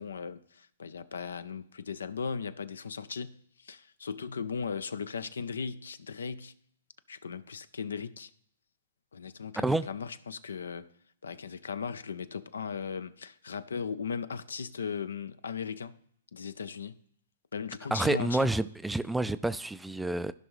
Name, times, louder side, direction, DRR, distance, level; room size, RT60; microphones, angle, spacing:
voice 1, 0.0-6.6 7.1-8.3 9.1-10.9 11.2-16.0 16.3-17.0 17.5-18.5, left 6 dB, 75° left, 0.5 m, -37 dB
voice 2, 9.6-9.9 17.9-20.3, right 2 dB, 5° right, 0.3 m, -29 dB
15.5 x 5.4 x 3.1 m
figure-of-eight pair, 115°, 0 cm